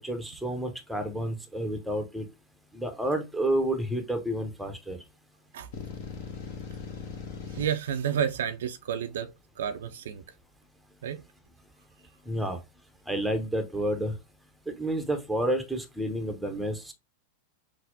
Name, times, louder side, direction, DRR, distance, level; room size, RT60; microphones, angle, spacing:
voice 1, 0.0-2.3 2.7-5.0 12.3-12.6 13.1-14.1 14.7-16.9, right 1 dB, ahead, 0.7 m, -30 dB
sound 1, 5.7-7.7, left 6 dB, 50° left, 1.0 m, -39 dB
voice 2, 7.5-9.3 9.6-10.2 11.0-11.2, right 8 dB, 60° right, 0.4 m, -30 dB
5.8 x 2.0 x 2.6 m
figure-of-eight pair, 90°, 0 cm